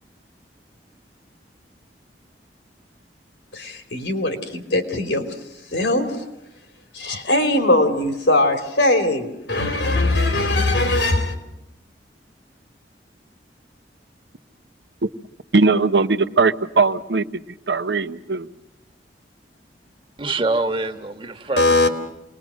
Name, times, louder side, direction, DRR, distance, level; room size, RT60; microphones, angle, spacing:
voice 1, 3.5-5.2 5.7-6.3 6.9-11.3 21.6-21.9, left 2 dB, 85° left, 3.3 m, -20 dB
voice 2, 15.5-17.2 17.7-18.5, right 4 dB, 75° right, 1.0 m, -19 dB
voice 3, 20.2-21.9, right 2 dB, 30° right, 1.5 m, -25 dB
27.5 x 21.0 x 6.4 m
head